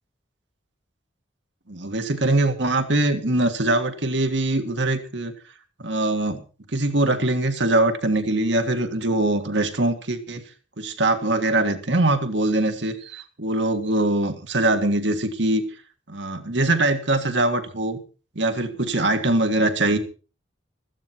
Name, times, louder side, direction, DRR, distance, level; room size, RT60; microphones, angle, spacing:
voice 1, 1.7-5.3 5.8-6.4 6.7-10.4 10.8-15.6 16.1-18.0 18.4-20.0, right 2 dB, 70° right, 7 dB, 1.8 m, -22 dB
16.0 x 14.0 x 4.5 m, 0.36 s
head